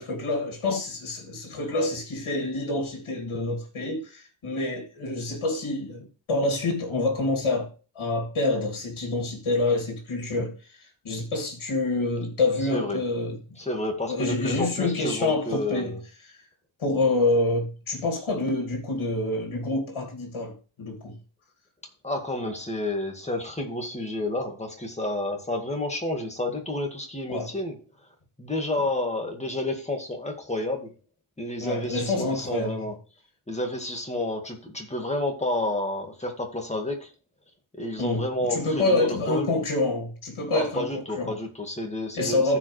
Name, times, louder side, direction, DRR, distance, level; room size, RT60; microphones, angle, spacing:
voice 1, 0.0-7.7 7.9-13.4 14.1-16.0 16.8-21.1 27.3-27.5 31.6-32.8 38.0-38.2 38.5-40.8 41.2-41.4 42.1-42.6, left 2 dB, 85° left, 2.6 m, -27 dB
voice 2, 13.6-16.0 22.0-27.8 28.4-30.9 31.4-33.0 33.5-37.1 37.7-39.5 40.5-42.6, left 1 dB, 15° left, 1.9 m, -30 dB
14.5 x 4.9 x 3.3 m
wide cardioid pair, 145°, 48 cm